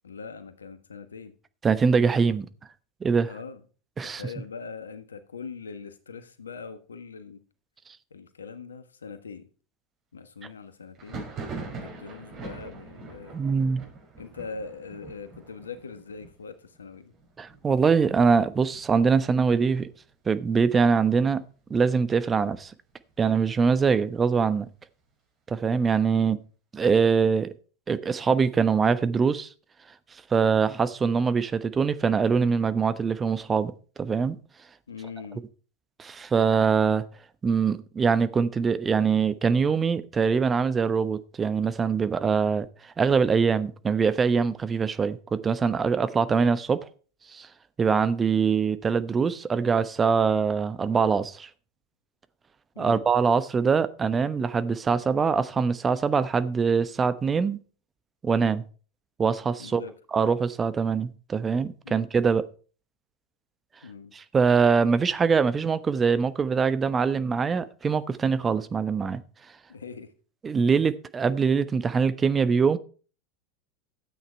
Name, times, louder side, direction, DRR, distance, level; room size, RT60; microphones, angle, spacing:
voice 1, 0.0-1.3 3.3-3.6 4.0-7.4 8.1-9.5 10.1-11.2 11.7-13.4 14.2-17.1 26.1-26.3 34.9-35.4 52.7-53.0 59.6-59.9 61.8-62.1 63.8-64.1 69.7-70.1, left 5 dB, 85° left, 1.3 m, -41 dB
voice 2, 1.6-2.5 3.0-3.3 4.0-4.2 13.3-13.8 17.4-19.9 20.3-21.4 21.7-22.7 23.2-24.7 25.5-26.4 26.7-27.5 27.9-29.5 30.3-33.7 34.0-34.4 36.0-37.0 37.4-42.7 43.0-46.9 47.3-47.5 47.8-51.5 52.8-57.6 58.2-58.6 59.2-59.8 60.1-62.4 64.1-69.2 70.4-72.8, right 5 dB, 25° right, 0.9 m, -23 dB
Thunder, 10.9-20.5 20.7-21.4 21.7-22.7 23.1-24.8, right 4 dB, 40° right, 5.7 m, -44 dB
13.0 x 8.5 x 4.5 m
figure-of-eight pair, 85°, 0 cm